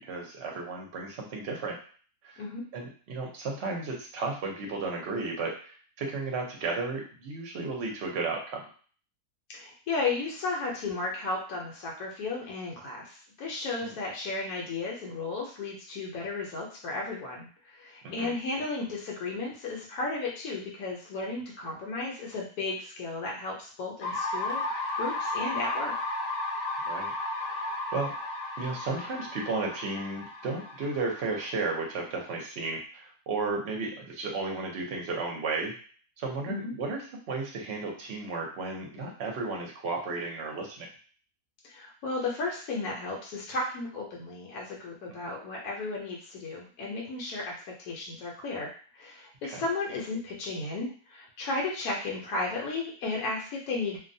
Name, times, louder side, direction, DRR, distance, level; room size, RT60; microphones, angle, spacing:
voice 1, 0.0-1.8 2.2-2.4 2.7-8.6 13.8-13.9 18.0-18.3 26.9-27.1 27.4-28.1 28.6-35.7 36.2-37.0 37.3-40.9 49.4-49.6, right 3 dB, 55° right, 0 dB, 0.8 m, -34 dB
voice 2, 9.5-25.9 36.5-36.7 41.6-54.1, left 3 dB, 80° left, -2 dB, 1.1 m, -34 dB
sound 1, 24.0-31.9, left 2 dB, 55° left, 0.7 m, -34 dB
2.6 x 2.1 x 2.6 m, 0.42 s
omnidirectional pair, 1.6 m